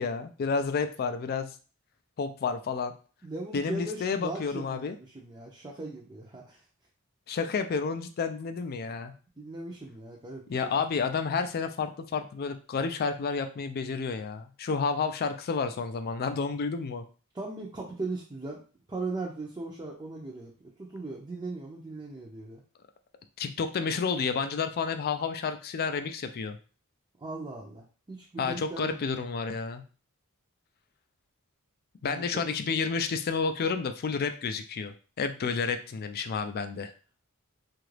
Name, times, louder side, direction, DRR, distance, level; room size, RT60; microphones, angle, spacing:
voice 1, 0.0-1.5 2.2-2.9 3.5-5.0 7.3-9.1 10.5-17.0 23.4-26.6 28.4-29.8 32.0-36.9, left 5 dB, 45° left, 9 dB, 0.4 m, -30 dB
voice 2, 3.2-6.6 9.4-10.7 17.3-18.6 18.9-22.6 27.2-29.0 32.0-32.3, right 2 dB, 20° right, -3 dB, 0.5 m, -38 dB
2.9 x 2.4 x 3.2 m, 0.37 s
head